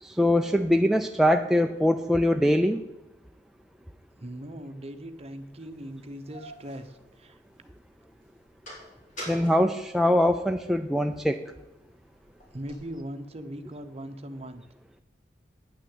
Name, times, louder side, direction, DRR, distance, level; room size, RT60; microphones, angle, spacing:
voice 1, 0.0-2.8 9.3-11.4, left 1 dB, ahead, 4 dB, 0.4 m, -23 dB
voice 2, 4.2-7.4 12.5-14.6, right 1 dB, 35° right, 8 dB, 0.9 m, -39 dB
sound 1, 5.1-5.2 5.9-7.7 8.1-10.7 11.2-13.0, equal, 45° left, 4.3 m, -45 dB
9.5 x 6.3 x 8.7 m, 0.94 s
head